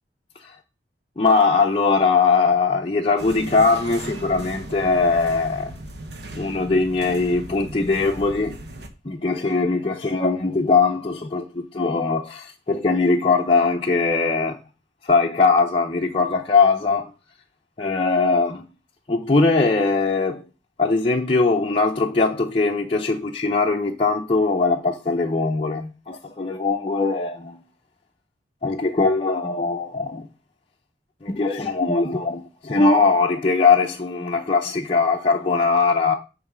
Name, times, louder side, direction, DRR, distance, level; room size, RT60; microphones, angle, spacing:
voice 1, 1.2-5.7 6.3-8.5 9.0-14.6 15.0-17.1 17.8-18.6 19.1-20.4 20.8-27.6 28.6-30.3 31.2-36.2, left 4 dB, 30° left, 0.6 m, -20 dB
sound 1, 3.2-8.9, right 1 dB, 70° right, 1.1 m, -37 dB
9.2 x 3.2 x 6.0 m
head